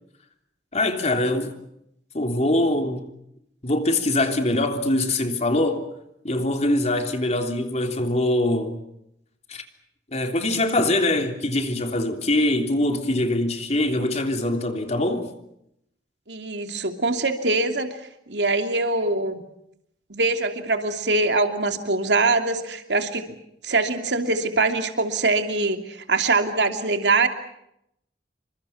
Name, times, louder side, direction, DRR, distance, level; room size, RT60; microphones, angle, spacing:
voice 1, 0.7-1.5 2.1-3.1 3.6-5.9 6.2-8.8 9.5-9.6 10.1-15.3, left 1 dB, 40° left, 3.3 m, -23 dB
voice 2, 16.3-17.9 18.3-19.4 20.1-23.4 23.6-27.3, right 3 dB, 80° right, 2.9 m, -23 dB
29.0 x 25.5 x 5.8 m
head